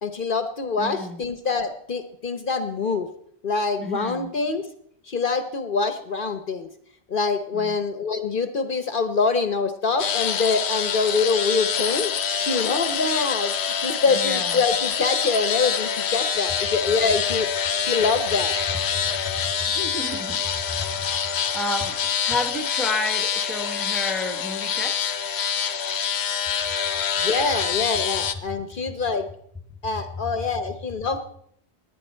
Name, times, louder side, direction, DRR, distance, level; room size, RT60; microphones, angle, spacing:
voice 1, 0.0-3.1 3.4-4.7 5.0-6.7 7.1-18.6 27.2-29.3 29.8-31.2, left 4 dB, 55° left, 9 dB, 1.0 m, -25 dB
voice 2, 0.8-1.2 3.8-4.3 7.5-7.7 14.1-14.6 18.9-20.4 20.7-25.1, left 2 dB, ahead, 7 dB, 1.2 m, -31 dB
sound 1, 10.0-28.3, left 7 dB, 80° left, 1.1 m, -26 dB
18.5 x 10.5 x 4.4 m, 0.69 s
omnidirectional pair, 1.1 m